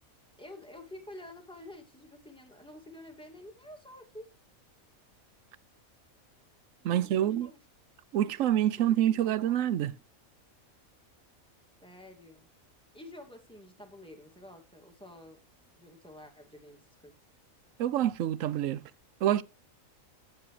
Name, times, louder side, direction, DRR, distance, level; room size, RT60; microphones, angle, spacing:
voice 1, 0.4-4.3 6.8-7.6 8.2-8.3 8.8-9.6 11.8-12.5 12.9-15.4 15.8-17.2, left 1 dB, 5° left, 2.2 m, -49 dB
voice 2, 6.8-7.5 8.1-9.9 17.8-18.8 19.2-19.4, right 11 dB, 70° right, 1.0 m, -27 dB
12.5 x 7.8 x 3.2 m
omnidirectional pair, 1.5 m